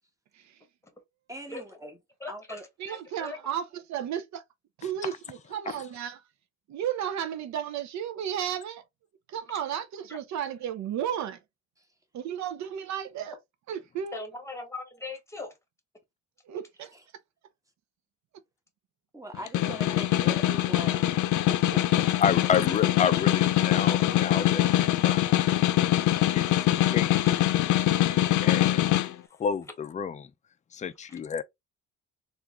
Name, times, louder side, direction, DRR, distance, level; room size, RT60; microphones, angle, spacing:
voice 1, 1.3-2.0 2.3-3.0 16.9-17.0 19.1-22.1, right 1 dB, 10° right, 1.0 m, -42 dB
voice 2, 2.2-2.6 2.8-3.4 10.1-10.2 14.1-15.5 27.3-27.4, left 3 dB, 10° left, 1.3 m, -40 dB
voice 3, 2.8-4.4 4.8-6.2 6.7-8.8 9.3-11.4 12.1-13.4 13.7-14.3 16.5-16.9, right 9 dB, 65° right, 0.6 m, -33 dB
Snare drum, 19.3-29.1, left 14 dB, 75° left, 0.5 m, -23 dB
voice 4, 22.2-25.7 26.3-26.4 26.9-27.1 28.4-29.1 29.4-30.3 30.7-31.4, left 7 dB, 25° left, 0.4 m, -30 dB
3.5 x 2.5 x 2.9 m
cardioid pair, 90°, 30 cm